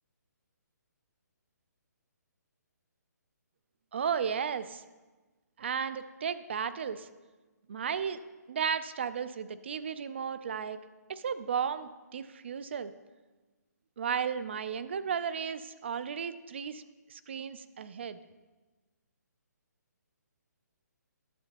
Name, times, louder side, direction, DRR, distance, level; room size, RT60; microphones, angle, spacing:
voice 1, 3.9-4.8 5.6-7.1 7.7-8.2 8.5-10.8 11.1-12.9 14.0-16.8 17.1-18.2, right 7 dB, 40° right, 13 dB, 0.4 m, -34 dB
11.5 x 7.0 x 2.9 m, 1.2 s
hypercardioid pair, 170°, 10 cm